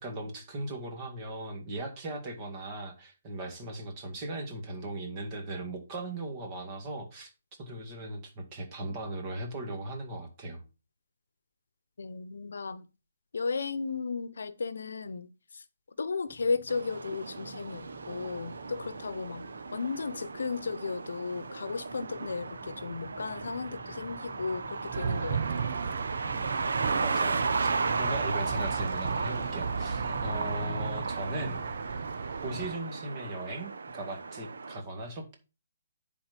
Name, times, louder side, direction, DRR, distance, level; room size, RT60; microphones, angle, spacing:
voice 1, 0.0-7.3 7.6-10.6 27.0-27.7 28.0-31.6 32.4-35.3, right 2 dB, 25° right, 2.0 m, -38 dB
voice 2, 12.0-12.9 13.3-15.6 16.0-25.7, left 4 dB, 80° left, 0.8 m, -35 dB
Male speech man speaking / Motorcycle / Idling, 16.3-32.3, left 2 dB, 25° left, 2.2 m, -48 dB
sound 1, 16.7-34.8, right 4 dB, 85° right, 0.9 m, -35 dB
sound 2, 24.9-32.8, right 6 dB, 45° right, 0.6 m, -35 dB
10.0 x 4.3 x 5.2 m
hypercardioid pair, 170°, 0 cm